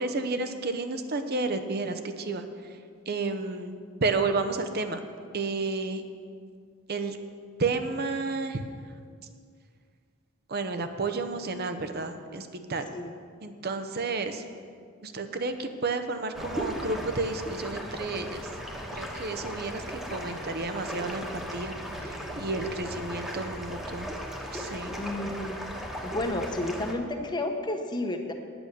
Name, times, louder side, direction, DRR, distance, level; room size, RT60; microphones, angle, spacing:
voice 1, 0.0-2.4 3.1-5.0 5.3-6.0 6.9-7.2 7.6-8.6 10.5-12.9 13.4-14.4 15.0-18.5 18.9-21.7 22.0-24.1 24.5-24.9, right 3 dB, 50° right, 8 dB, 0.8 m, -31 dB
sound 1, 16.3-26.9, equal, ahead, 1.2 m, -37 dB
voice 2, 25.0-25.7 26.0-28.3, left 1 dB, 20° left, 5 dB, 1.0 m, -31 dB
10.0 x 8.8 x 6.7 m, 2.1 s
head